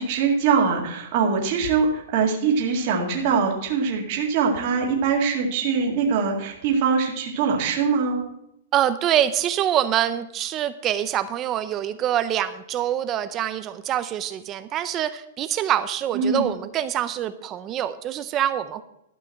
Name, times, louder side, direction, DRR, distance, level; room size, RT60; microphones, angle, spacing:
voice 1, 0.0-8.2 16.1-16.5, right 5 dB, 40° right, 0 dB, 1.9 m, -22 dB
voice 2, 8.7-18.8, right 11 dB, 20° right, 12 dB, 0.5 m, -25 dB
12.5 x 5.4 x 7.6 m, 0.81 s
hypercardioid pair, 165°, 0 cm